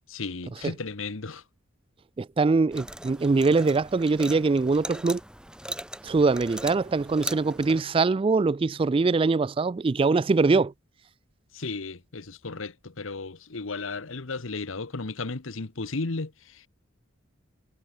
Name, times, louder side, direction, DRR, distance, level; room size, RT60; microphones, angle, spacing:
voice 1, 0.1-1.4 11.5-16.7, left 3 dB, 75° left, 1.2 m, -34 dB
voice 2, 2.2-5.2 6.0-10.7, right 3 dB, 25° right, 0.3 m, -23 dB
sound 1, 2.7-7.8, right 1 dB, 5° right, 6.9 m, -39 dB
head